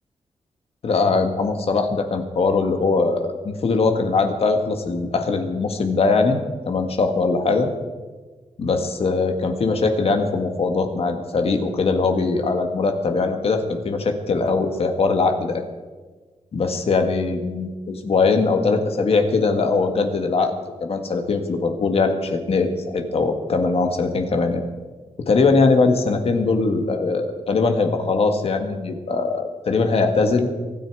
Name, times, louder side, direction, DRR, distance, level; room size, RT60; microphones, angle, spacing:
voice 1, 0.8-6.4 6.7-7.7 8.6-15.6 16.5-24.6 25.3-30.5, left 4 dB, 60° left, 5 dB, 1.7 m, -21 dB
24.0 x 9.8 x 4.7 m, 1.3 s
wide cardioid pair, 145°, 12 cm